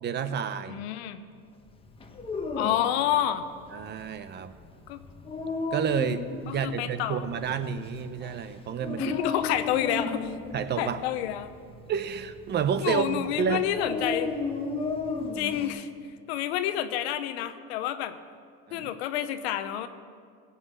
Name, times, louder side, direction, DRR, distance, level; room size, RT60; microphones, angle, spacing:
voice 1, 0.0-0.8 3.7-4.5 5.7-9.2 10.5-11.0 11.9-13.6 18.7-18.9, right 7 dB, 35° right, 12 dB, 0.7 m, -30 dB
voice 2, 0.7-1.2 2.6-3.5 4.9-5.0 6.5-7.6 9.0-10.3 10.8-11.5 12.8-14.4 15.3-15.9 16.3-18.1 18.7-19.9, left 11 dB, 85° left, 11 dB, 0.9 m, -29 dB
Dog, 1.9-15.7, left 3 dB, 15° left, 1.1 m, -35 dB
16.5 x 5.6 x 8.2 m, 2.1 s
supercardioid pair, 115°, 31 cm